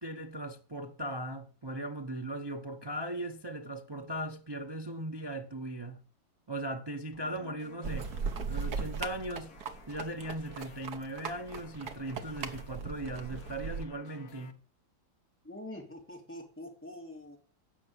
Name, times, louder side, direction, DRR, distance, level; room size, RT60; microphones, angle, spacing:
voice 1, 0.0-6.0 6.5-8.1 8.5-9.6 9.9-14.6, right 1 dB, 25° right, 0.5 m, -38 dB
sound 1, 7.1-14.5, left 6 dB, 55° left, 1.7 m, -55 dB
sound 2, 7.8-13.8, right 5 dB, 60° right, 1.6 m, -38 dB
voice 2, 15.4-17.4, left 1 dB, 5° left, 3.1 m, -45 dB
16.0 x 6.1 x 8.3 m
omnidirectional pair, 2.0 m